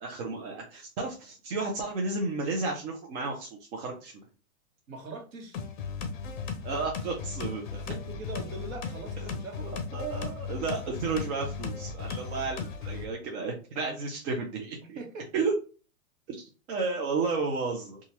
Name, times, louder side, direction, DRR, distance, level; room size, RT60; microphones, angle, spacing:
voice 1, 0.0-4.2 6.6-7.6 9.9-15.0 15.3-15.5 16.3-18.0, right 4 dB, 50° right, 0 dB, 0.7 m, -32 dB
voice 2, 4.9-5.6 7.8-9.8 14.9-15.3, right 2 dB, 70° right, 2 dB, 1.2 m, -41 dB
sound 1, 5.5-13.1, left 5 dB, 35° left, 0.5 m, -36 dB
2.9 x 2.4 x 2.8 m, 0.34 s
hypercardioid pair, 160°, 42 cm